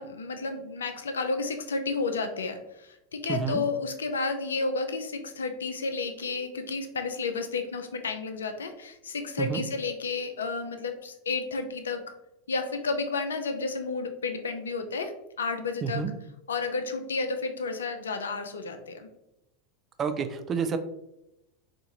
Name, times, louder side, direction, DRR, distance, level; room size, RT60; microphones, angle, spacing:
voice 1, 0.0-12.0 12.5-15.1 15.4-16.0 16.5-19.1, left 4 dB, 75° left, 7 dB, 0.4 m, -31 dB
voice 2, 3.3-3.6 9.4-9.6 15.8-16.1 20.0-20.8, right 6 dB, 30° right, 8 dB, 0.4 m, -29 dB
4.5 x 2.5 x 2.8 m, 0.89 s
figure-of-eight pair, 85°, 0 cm